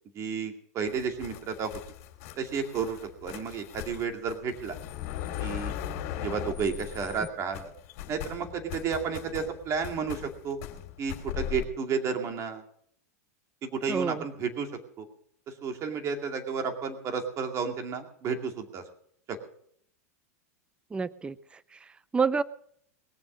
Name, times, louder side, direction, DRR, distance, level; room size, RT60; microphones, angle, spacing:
voice 1, 0.1-1.7 2.4-4.8 5.4-5.7 6.2-7.7 8.1-10.6 11.0-12.6 13.7-14.7 15.0-15.1 15.5-18.8, right 5 dB, 35° right, 4 dB, 2.4 m, -32 dB
sound 1, 0.9-7.3 7.5-11.7, left 11 dB, 60° left, 2.3 m, -39 dB
voice 2, 13.9-14.2 20.9-22.4, right 5 dB, 10° right, 18 dB, 0.5 m, -29 dB
21.5 x 7.2 x 6.3 m, 0.65 s
hypercardioid pair, 115°, 8 cm